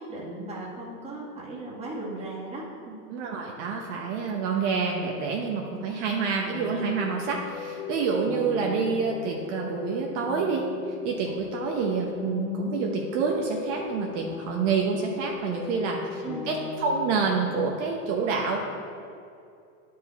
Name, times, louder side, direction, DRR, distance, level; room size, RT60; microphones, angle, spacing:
voice 1, 0.0-3.1 16.2-16.5, right 2 dB, 15° right, -5 dB, 1.7 m, -37 dB
voice 2, 3.1-10.6 11.0-18.7, right 5 dB, 55° right, 0 dB, 1.0 m, -28 dB
sound 1, 6.5-17.6, left 7 dB, 20° left, 0.5 m, -37 dB
10.5 x 4.8 x 4.1 m, 2.5 s
supercardioid pair, 135°, 44 cm